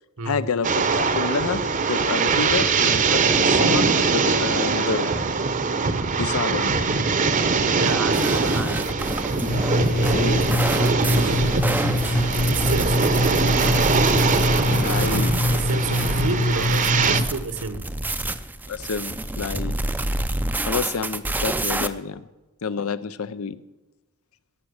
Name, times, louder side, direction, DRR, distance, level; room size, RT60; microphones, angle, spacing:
voice 1, 0.2-1.6 1.9-5.1 6.2-6.7 10.1-10.4 14.8-15.3 18.7-19.7 20.7-22.2 22.6-23.6, left 5 dB, 75° left, 15 dB, 0.6 m, -28 dB
sound 1, 0.6-17.2, right 4 dB, 35° right, 0.8 m, -22 dB
voice 2, 7.8-8.8 10.6-12.1 12.5-13.1 15.5-17.9, right 3 dB, 75° right, 11 dB, 1.1 m, -30 dB
sound 2, 8.1-21.9, right 1 dB, 10° right, 0.5 m, -28 dB
sound 3, 9.5-17.2, left 1 dB, 40° left, 0.7 m, -24 dB
16.5 x 7.1 x 6.5 m, 1.1 s
head